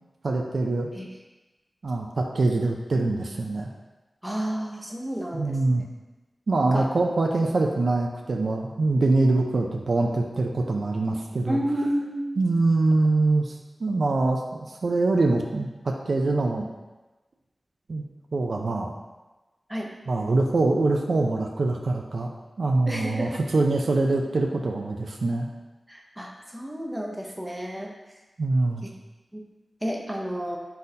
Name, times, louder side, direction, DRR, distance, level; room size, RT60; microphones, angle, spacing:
voice 1, 0.2-0.9 1.8-3.7 5.3-5.8 6.5-11.6 12.4-13.5 13.8-16.7 17.9-18.0 18.3-18.9 20.1-22.3 22.6-25.5 28.4-28.9, right 2 dB, 70° right, 2 dB, 0.4 m, -24 dB
voice 2, 4.2-5.8 6.6-6.9 11.5-12.3 19.7-19.9 22.9-23.4 25.9-28.0 29.3-29.5 29.8-30.6, equal, 5° right, -1 dB, 0.6 m, -31 dB
4.0 x 3.8 x 2.7 m, 1.1 s
wide cardioid pair, 65°, 0 cm